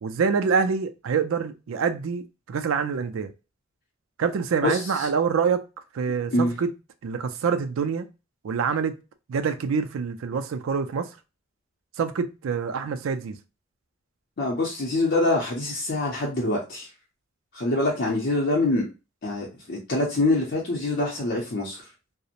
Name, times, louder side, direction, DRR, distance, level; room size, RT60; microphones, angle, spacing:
voice 1, 0.0-3.3 4.2-5.6 5.9-6.7 7.0-8.1 8.4-9.0 9.3-11.1 12.0-13.4, right 6 dB, 75° right, 0.4 m, -26 dB
voice 2, 4.6-5.1 6.3-6.5 14.4-16.9 17.5-18.9 19.2-21.8, left 2 dB, 50° left, 0.6 m, -25 dB
2.8 x 2.0 x 2.4 m
head